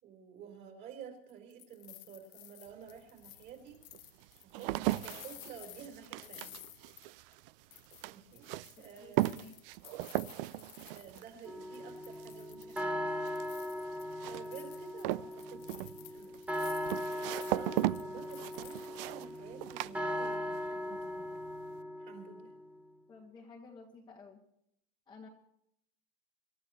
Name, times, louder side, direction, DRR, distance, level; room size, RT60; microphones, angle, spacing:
voice 1, 0.0-3.8 4.3-6.6 8.0-8.5 8.8-9.4 10.9-13.2 14.2-16.3 17.5-21.3 22.0-22.5, right 7 dB, 35° right, 2 dB, 4.2 m, -51 dB
sound 1, 1.3-7.4 7.7-11.5 11.7-12.9 13.3-19.4, left 19 dB, 55° left, 0.9 m, -54 dB
sound 2, 2.7-2.8 3.5-20.7 20.9-21.5, right 17 dB, 60° right, 0.5 m, -38 dB
voice 2, 9.0-9.5 23.1-24.4 25.1-25.3, left 4 dB, 15° left, -2 dB, 1.5 m, -52 dB
sound 3, 11.5-22.6, left 1 dB, 5° right, 0.9 m, -39 dB
26.5 x 13.5 x 3.1 m, 0.74 s
supercardioid pair, 165°, 32 cm